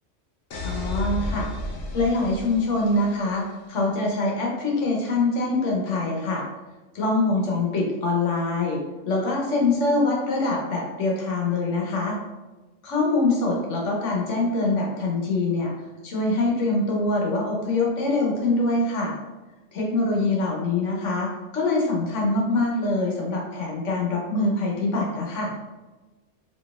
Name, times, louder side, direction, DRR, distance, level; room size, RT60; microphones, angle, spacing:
sound 1, 0.5-3.4, left 2 dB, 65° left, 0.8 m, -32 dB
voice 1, 0.6-1.5 1.9-3.4 3.7-6.4 6.9-12.1 12.8-15.7 16.0-19.1 19.7-25.5, left 2 dB, 80° left, -2 dB, 1.2 m, -24 dB
4.0 x 2.9 x 2.3 m, 1.2 s
omnidirectional pair, 1.3 m